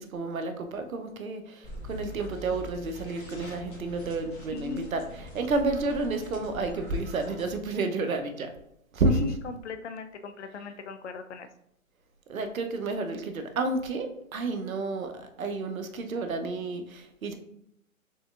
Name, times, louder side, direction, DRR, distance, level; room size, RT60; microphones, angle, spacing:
voice 1, 0.0-8.5 8.9-9.3 12.3-17.4, right 3 dB, 75° right, 7 dB, 0.7 m, -30 dB
sound 1, 1.6-7.5, left 1 dB, 15° left, 1.2 m, -43 dB
voice 2, 4.5-5.1 9.1-11.5, left 5 dB, 55° left, 8 dB, 0.5 m, -40 dB
4.3 x 3.9 x 2.4 m, 0.77 s
figure-of-eight pair, 125°, 41 cm